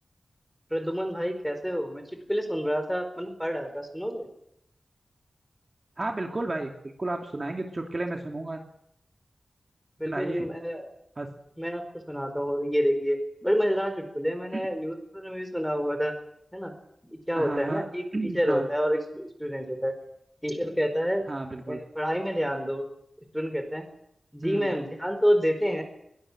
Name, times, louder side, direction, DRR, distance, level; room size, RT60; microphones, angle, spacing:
voice 1, 0.7-2.0 2.3-4.3 10.0-10.9 11.6-16.2 16.5-16.7 17.0-19.9 20.4-21.3 21.7-22.9 23.3-23.9 24.3-25.8, equal, ahead, 7 dB, 4.7 m, -28 dB
voice 2, 6.0-6.7 7.0-8.6 10.1-10.5 11.2-11.3 14.5-14.6 17.3-17.9 18.1-18.7 21.3-21.8 24.4-24.7, right 2 dB, 35° right, 2 dB, 2.9 m, -32 dB
22.0 x 21.0 x 7.6 m, 0.76 s
wide cardioid pair, 100°, 0 cm